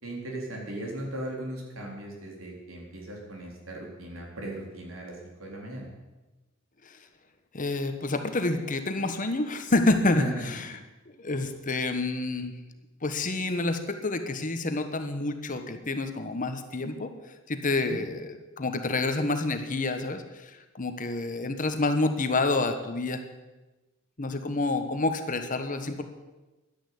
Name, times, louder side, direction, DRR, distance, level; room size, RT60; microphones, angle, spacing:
voice 1, 0.0-5.9 10.1-10.5 17.8-18.0, right 1 dB, 80° right, -1 dB, 4.0 m, -37 dB
voice 2, 7.5-10.8 11.2-12.5 13.0-17.1 17.5-20.5 20.8-23.2 24.2-26.0, left 2 dB, 40° left, 7 dB, 1.2 m, -28 dB
11.5 x 10.0 x 8.5 m, 1.1 s
head